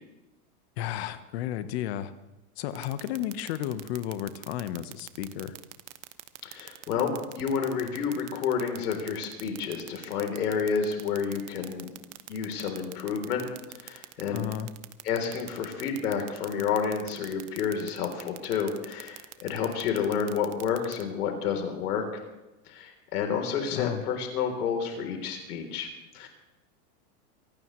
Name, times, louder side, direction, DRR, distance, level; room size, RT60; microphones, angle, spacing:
voice 1, 0.8-2.1 2.6-5.6 14.3-14.7 23.7-24.0, left 11 dB, 40° left, 12 dB, 1.2 m, -33 dB
sound 1, 2.8-21.0, right 17 dB, 50° right, 1.0 m, -43 dB
voice 2, 6.4-11.9 12.3-13.5 13.8-14.5 15.0-22.1 22.7-25.9 26.1-26.3, left 6 dB, 75° left, 3 dB, 3.7 m, -30 dB
24.0 x 17.5 x 3.2 m, 1.0 s
supercardioid pair, 165°, 46 cm